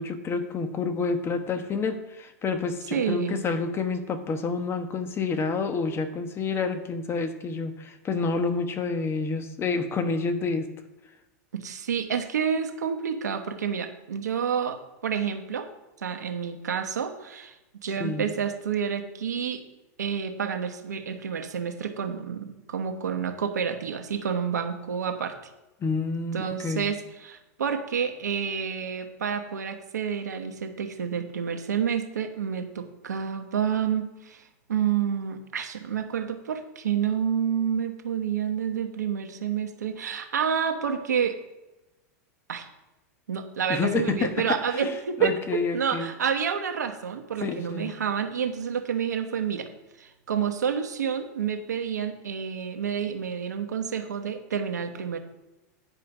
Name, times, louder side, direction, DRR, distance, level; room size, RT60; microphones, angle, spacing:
voice 1, 0.0-10.7 18.0-18.3 25.8-26.9 43.7-44.5 44.7-44.9 45.2-46.1 47.4-47.9, left 4 dB, 25° left, 8 dB, 1.2 m, -28 dB
voice 2, 2.9-3.4 11.5-15.7 16.0-17.5 17.8-19.6 20.0-25.4 26.3-34.4 34.7-41.4 42.5-42.6 43.3-49.7 50.0-55.2, right 7 dB, 90° right, 6 dB, 1.1 m, -29 dB
10.5 x 5.0 x 6.0 m, 1.0 s
hypercardioid pair, 105°, 9 cm